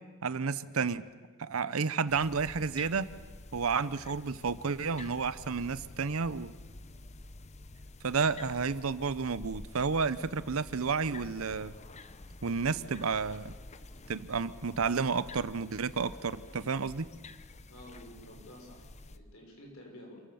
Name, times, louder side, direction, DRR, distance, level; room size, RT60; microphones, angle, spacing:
voice 1, 0.2-1.1 1.4-3.1 3.5-6.5 8.0-11.7 12.4-13.5 14.1-17.1, right 5 dB, 70° right, 16 dB, 0.7 m, -31 dB
sound 1, 2.1-19.2, left 2 dB, 30° left, 0.8 m, -49 dB
voice 2, 17.7-20.2, left 1 dB, 70° left, 0 dB, 6.4 m, -51 dB
27.0 x 15.5 x 7.1 m, 1.5 s
head